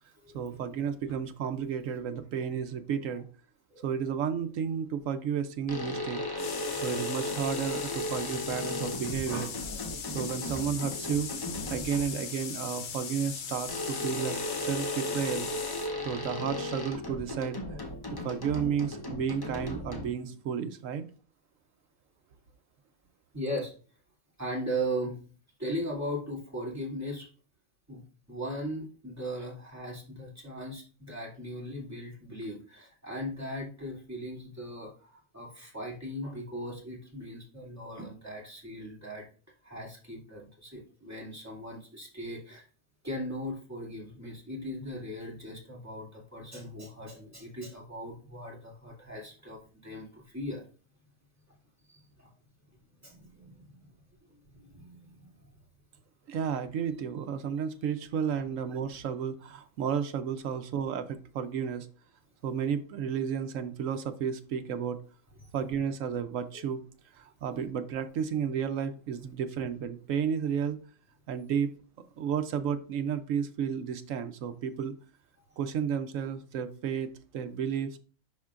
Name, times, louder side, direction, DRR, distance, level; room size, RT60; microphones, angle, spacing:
voice 1, 0.3-3.2 3.8-6.2 6.8-9.5 10.1-11.3 11.7-15.5 16.0-17.6 18.1-21.1 56.3-61.9 62.4-65.0 65.5-66.8 67.1-70.8 71.3-71.7 72.2-74.9 75.6-78.0, right 7 dB, 70° right, 9 dB, 0.9 m, -32 dB
sound 1, 5.7-12.3 13.7-20.3, left 1 dB, 25° left, 0.5 m, -36 dB
sound 2, 6.4-15.9, left 7 dB, 75° left, 0.4 m, -39 dB
voice 2, 6.5-7.1 9.3-9.5 10.4-10.5 23.3-23.7 24.4-25.2 25.6-27.3 27.9-39.2 39.6-42.6 43.0-50.6 51.9-52.0 53.0-53.8 54.4-55.3 65.4-65.5, equal, 10° right, -4 dB, 2.5 m, -38 dB
11.0 x 3.7 x 2.4 m, 0.37 s
omnidirectional pair, 1.6 m